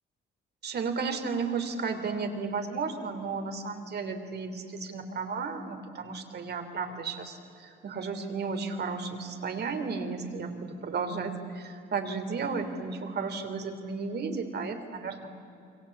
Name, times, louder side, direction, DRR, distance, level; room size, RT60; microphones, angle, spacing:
voice 1, 0.6-15.3, right 4 dB, 55° right, 6 dB, 3.2 m, -33 dB
28.0 x 23.5 x 8.5 m, 2.6 s
cardioid pair, 90°, 20 cm